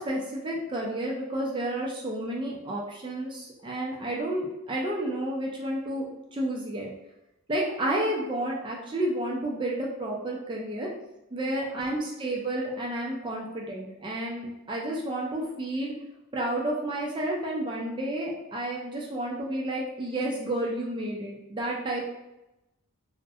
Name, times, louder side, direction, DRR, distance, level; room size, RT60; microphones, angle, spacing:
voice 1, 0.0-6.1 6.3-6.9 7.5-10.9 11.3-15.9 16.3-22.0, right 1 dB, 20° right, -3 dB, 0.3 m, -31 dB
2.5 x 2.0 x 2.6 m, 0.93 s
head